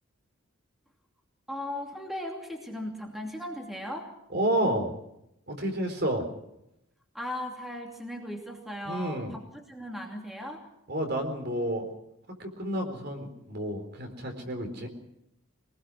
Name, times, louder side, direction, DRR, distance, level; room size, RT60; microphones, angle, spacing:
voice 1, 1.5-4.1 7.1-10.6, left 1 dB, ahead, 1 dB, 2.7 m, -37 dB
voice 2, 4.3-4.9 5.5-6.3 8.8-9.3 10.9-11.9 12.4-14.9, right 1 dB, 50° right, 5 dB, 4.2 m, -30 dB
24.0 x 19.5 x 6.3 m, 0.81 s
head